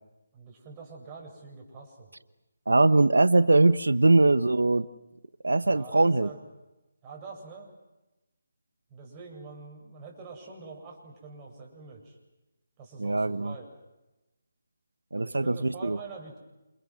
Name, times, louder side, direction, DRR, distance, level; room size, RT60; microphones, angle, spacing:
voice 1, 0.3-2.1 5.6-6.4 7.0-7.7 8.9-12.2 12.8-13.7 15.2-16.4, right 4 dB, 20° right, 0 dB, 7.9 m, -45 dB
voice 2, 2.7-4.9 5.4-6.3 13.0-13.5 15.1-16.0, right 2 dB, 80° right, 14 dB, 1.1 m, -21 dB
29.0 x 29.0 x 6.4 m, 1.0 s
figure-of-eight pair, 155°, 0 cm